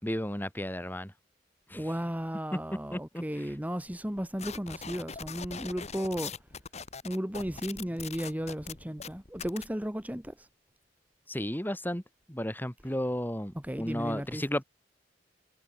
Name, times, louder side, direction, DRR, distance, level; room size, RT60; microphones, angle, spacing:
voice 1, 0.0-1.1 1.7-1.9 2.9-3.5 11.3-12.0 12.3-14.6, left 1 dB, 10° left, 3.6 m, -33 dB
voice 2, 1.7-6.3 7.0-10.5 13.6-14.4, equal, 10° right, 1.5 m, -35 dB
sound 1, 4.4-9.7, left 6 dB, 40° left, 1.7 m, -41 dB
head